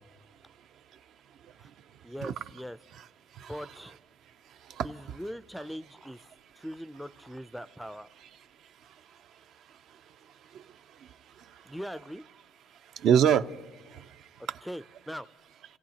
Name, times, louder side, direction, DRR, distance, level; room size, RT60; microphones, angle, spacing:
voice 1, 2.0-2.8 3.5-4.0 4.8-6.2 6.6-8.1 11.7-12.2 14.6-15.3, equal, ahead, 15 dB, 0.4 m, -40 dB
voice 2, 3.3-3.7 4.5-5.2 8.8-9.0 9.9-10.0 10.5-11.8 12.8-14.7, right 8 dB, 60° right, 11 dB, 0.5 m, -29 dB
28.0 x 15.0 x 2.9 m, 1.3 s
cardioid pair, 110°, 0 cm